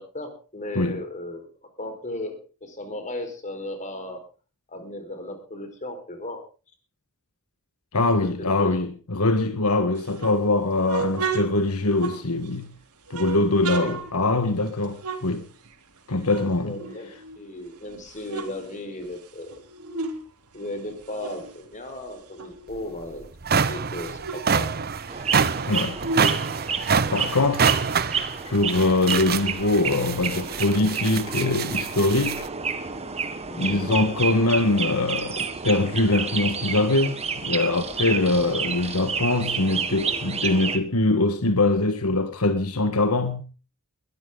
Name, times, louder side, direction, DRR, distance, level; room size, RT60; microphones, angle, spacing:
voice 1, 0.0-1.5 1.8-4.2 4.7-6.4 8.2-8.7 13.7-13.9 16.3-17.1 17.4-19.6 20.5-25.4 33.5-33.8, left 1 dB, 35° left, 4.7 m, -36 dB
voice 2, 7.9-12.7 13.1-15.4 16.1-16.8 25.7-26.0 27.1-27.7 28.4-32.5 33.6-43.4, left 2 dB, 75° left, 1.6 m, -23 dB
sound 1, 10.0-12.6 13.1-16.0 16.2-17.6 18.0-20.2 20.5-23.1 23.5-23.6 23.8-27.2, right 4 dB, 85° right, 3.4 m, -35 dB
sound 2, 22.7-22.8 23.2-32.5, right 6 dB, 45° right, 0.9 m, -26 dB
sound 3, 25.1-40.8, right 6 dB, 30° right, 1.7 m, -30 dB
21.0 x 13.5 x 3.9 m
head